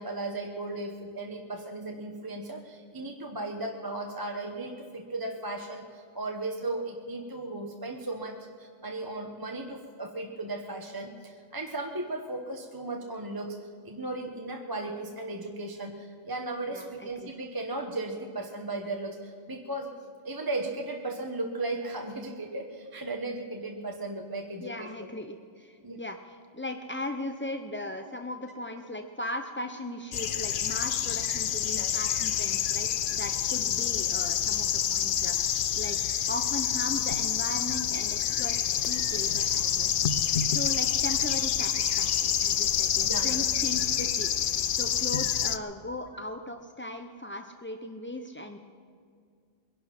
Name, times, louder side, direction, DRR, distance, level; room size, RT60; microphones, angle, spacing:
voice 1, 0.0-19.9 20.2-24.9 25.8-26.0 31.7-31.9 43.0-43.5, right 2 dB, 20° right, 2 dB, 0.9 m, -36 dB
voice 2, 16.7-17.3 24.6-36.0 36.3-44.3 44.7-48.6, left 1 dB, 15° left, 5 dB, 0.4 m, -38 dB
sound 1, 30.1-45.6, left 9 dB, 60° left, 0.6 m, -27 dB
21.5 x 11.5 x 5.8 m, 2.2 s
omnidirectional pair, 1.2 m